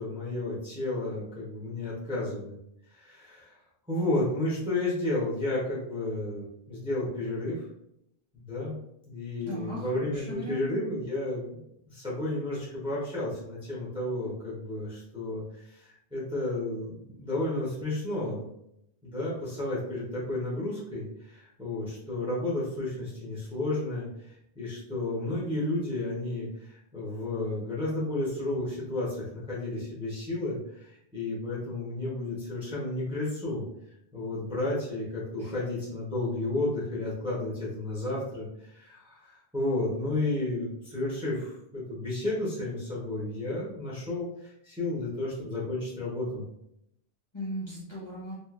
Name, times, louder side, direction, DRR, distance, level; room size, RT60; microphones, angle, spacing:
voice 1, 0.0-2.6 2.9-3.5 3.9-7.6 8.3-8.7 9.1-11.6 11.9-18.5 19.0-33.6 34.1-46.5, left 2 dB, 5° right, -7 dB, 0.8 m, -32 dB
voice 2, 9.4-10.6 35.4-35.5 47.3-48.3, left 1 dB, 25° left, -8 dB, 1.0 m, -37 dB
3.0 x 2.5 x 2.4 m, 0.78 s
omnidirectional pair, 1.2 m